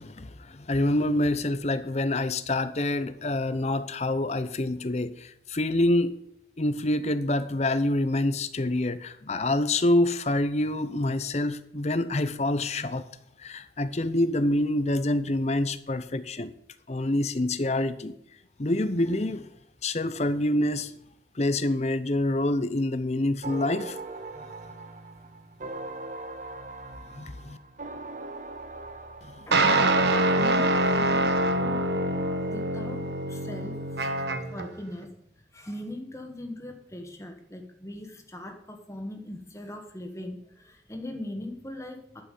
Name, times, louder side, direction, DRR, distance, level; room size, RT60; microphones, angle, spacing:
voice 1, 0.0-6.1 6.6-13.1 13.4-16.5 16.9-18.2 18.6-19.5 19.8-20.9 21.4-24.0 27.1-27.6 29.2-29.5, left 1 dB, 35° left, 0.7 m, -26 dB
sound 1, 23.4-32.1, right 2 dB, 45° right, 0.8 m, -40 dB
voice 2, 29.4-30.0 30.3-31.9 32.5-35.1 35.5-42.2, left 1 dB, 15° left, 1.6 m, -40 dB
sound 2, 29.5-34.7, right 1 dB, 70° right, 1.2 m, -25 dB
11.5 x 5.9 x 8.5 m
head